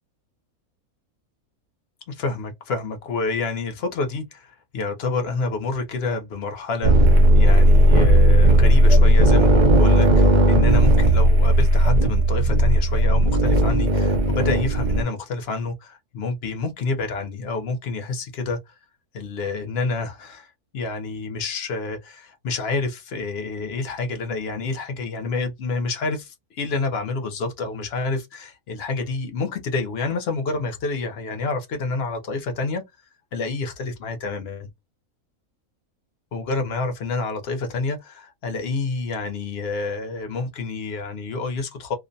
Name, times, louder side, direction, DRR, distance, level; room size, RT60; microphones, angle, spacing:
voice 1, 2.1-18.7 19.1-32.8 33.3-34.7 36.3-41.9, left 3 dB, 60° left, 0.7 m, -28 dB
sound 1, 6.8-15.0, right 1 dB, 70° right, 0.4 m, -15 dB
2.5 x 2.0 x 2.5 m
omnidirectional pair, 1.6 m